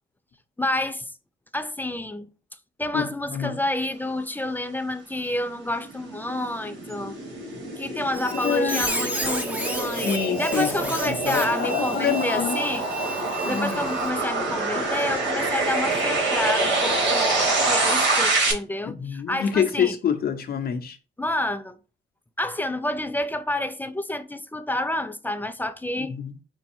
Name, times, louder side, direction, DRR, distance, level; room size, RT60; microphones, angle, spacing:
voice 1, 0.6-1.1 1.5-2.3 2.8-7.2 7.8-10.1 10.4-12.8 13.4-20.0 21.2-21.8 22.4-26.1, left 1 dB, 10° left, 0.5 m, -29 dB
voice 2, 2.9-3.6 8.4-8.8 9.9-12.6 13.4-13.9 18.8-21.0 26.0-26.3, left 7 dB, 50° left, 0.8 m, -27 dB
sound 1, 5.3-18.5, right 2 dB, 65° right, 2.0 m, -26 dB
Squeak, 8.1-14.1, right 1 dB, 5° right, 1.0 m, -32 dB
5.2 x 2.3 x 4.4 m
cardioid pair, 90°, 20 cm